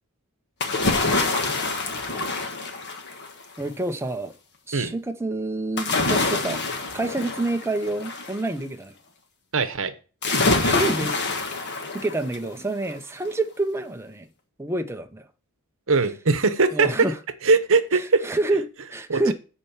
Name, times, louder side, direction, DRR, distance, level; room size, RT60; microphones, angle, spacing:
sound 1, 0.6-3.4 5.8-8.4 10.2-12.5 12.9-13.0, left 3 dB, 50° left, 1.4 m, -25 dB
voice 1, 3.6-4.3 4.7-6.6 6.9-8.9 10.6-11.5 11.9-14.3 14.6-15.3 16.7-17.2 17.9-19.3, right 2 dB, 10° right, 0.6 m, -28 dB
voice 2, 9.5-9.9 15.9-16.9 17.4-18.2 19.1-19.3, right 4 dB, 60° right, 1.0 m, -21 dB
8.5 x 4.5 x 7.1 m
head